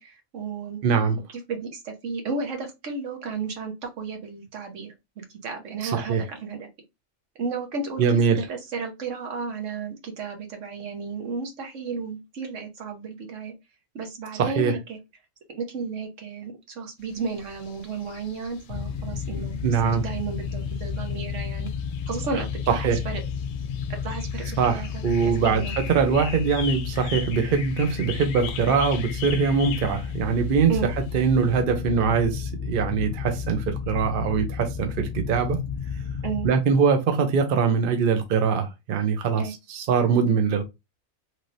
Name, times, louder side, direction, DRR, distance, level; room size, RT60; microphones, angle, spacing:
voice 1, 0.0-0.8 1.3-6.7 7.4-8.0 8.3-13.5 13.9-15.0 15.5-21.7 22.1-23.2 24.0-25.7 30.7-30.9 36.2-36.5 39.4-39.5, right 4 dB, 75° right, 1.3 m, -33 dB
voice 2, 0.8-1.2 5.8-6.2 8.0-8.4 14.4-14.7 19.6-20.0 22.7-23.0 24.6-30.7 31.1-35.6 36.4-39.4 39.7-40.6, right 6 dB, 55° right, 0.7 m, -22 dB
sound 1, 17.0-31.6, left 8 dB, 85° left, 0.9 m, -41 dB
sound 2, 18.7-36.5, left 6 dB, 60° left, 0.6 m, -32 dB
3.1 x 2.8 x 2.5 m
omnidirectional pair, 1.3 m